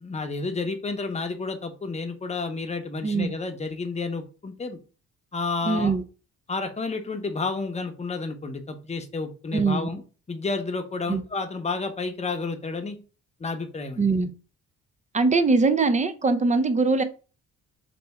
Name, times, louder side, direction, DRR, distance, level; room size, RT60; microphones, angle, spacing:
voice 1, 0.0-4.8 5.3-5.9 6.5-10.0 10.3-13.0 13.4-14.0, left 3 dB, 20° left, 0.8 m, -31 dB
voice 2, 5.6-6.0 9.5-9.9 11.1-11.2 14.0-14.3 15.1-17.0, right 3 dB, 25° right, 0.5 m, -22 dB
3.4 x 2.8 x 4.1 m
cardioid pair, 90°, 30 cm